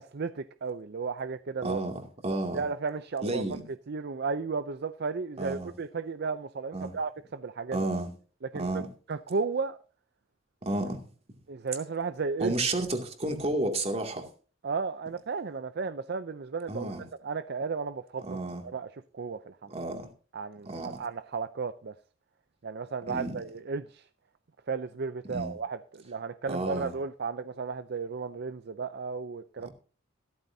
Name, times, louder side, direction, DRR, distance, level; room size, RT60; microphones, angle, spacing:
voice 1, 0.0-1.8 2.5-3.4 3.9-7.8 8.5-8.8 9.1-9.8 11.5-12.6 14.6-16.9 17.2-18.3 18.6-18.9 19.1-19.7 20.3-21.9 22.6-24.1 24.7-29.7, right 4 dB, 55° right, 0.5 m, -34 dB
voice 2, 1.6-2.6 3.2-3.7 5.4-5.7 6.7-6.9 7.7-8.1 8.5-8.9 10.6-11.0 12.4-14.3 16.7-17.1 18.2-18.7 19.7-20.1 20.7-21.0 23.1-23.4 25.3-25.6 26.5-26.9 29.6-29.7, right 2 dB, 30° right, 2.5 m, -32 dB
15.0 x 13.5 x 2.8 m
head